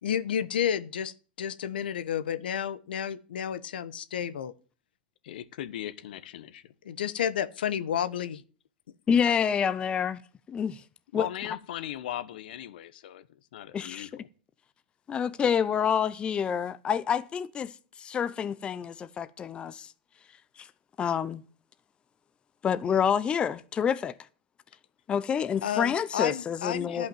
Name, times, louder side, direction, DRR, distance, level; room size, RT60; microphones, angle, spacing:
voice 1, 0.0-4.5 6.8-8.4 25.6-27.1, left 9 dB, 90° left, 0.9 m, -31 dB
voice 2, 5.2-6.7 11.1-14.3, left 12 dB, 70° left, 1.1 m, -38 dB
voice 3, 9.1-10.2 10.5-10.8 11.1-11.3 13.7-14.1 15.1-17.7 18.0-19.9 20.6-20.7 21.0-21.4 22.6-24.1 25.1-27.1, left 7 dB, 20° left, 0.6 m, -27 dB
11.5 x 5.7 x 9.0 m
supercardioid pair, 135°, 5 cm